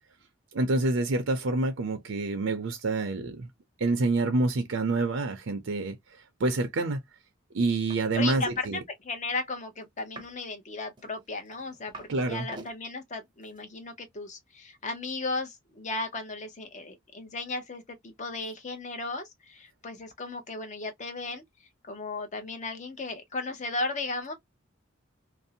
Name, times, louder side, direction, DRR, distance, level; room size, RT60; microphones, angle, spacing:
voice 1, 0.5-3.5 3.8-6.0 6.4-7.0 7.5-8.8 12.1-12.5, right 2 dB, 65° right, 0.5 m, -27 dB
sound 1, 7.9-8.0 8.3-8.7 10.0-10.4 11.0-12.1 12.4-12.8 13.4-13.6, right 2 dB, 20° right, 0.6 m, -46 dB
voice 2, 8.1-21.4 21.8-24.3, left 3 dB, 35° left, 0.7 m, -35 dB
2.6 x 2.0 x 2.6 m
head